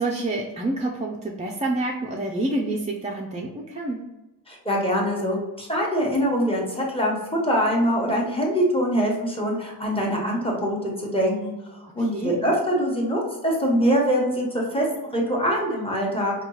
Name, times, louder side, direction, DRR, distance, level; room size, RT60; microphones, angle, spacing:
voice 1, 0.0-4.1 12.0-12.4, right 2 dB, 20° right, -2 dB, 0.3 m, -28 dB
voice 2, 4.5-7.2 7.4-14.9 15.1-16.3, equal, 15° left, -2 dB, 0.9 m, -23 dB
4.9 x 2.3 x 3.0 m, 1.0 s
wide cardioid pair, 145°, 41 cm